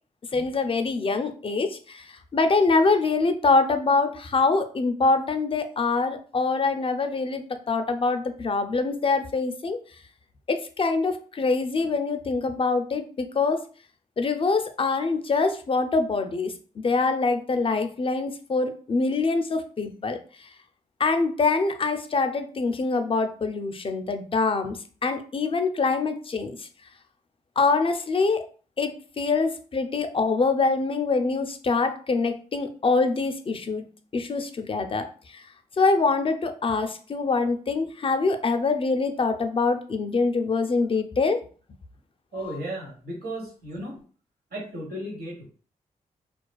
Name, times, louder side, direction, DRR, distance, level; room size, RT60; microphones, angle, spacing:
voice 1, 0.3-9.8 10.5-13.6 14.2-20.2 21.0-26.6 27.6-28.5 28.8-33.8 34.1-35.4 35.8-41.4 42.3-42.6, left 3 dB, 35° left, 8 dB, 0.4 m, -24 dB
voice 2, 42.3-44.0 44.5-45.5, right 1 dB, 65° right, -2 dB, 1.2 m, -35 dB
2.3 x 2.3 x 2.3 m, 0.40 s
supercardioid pair, 40°, 17 cm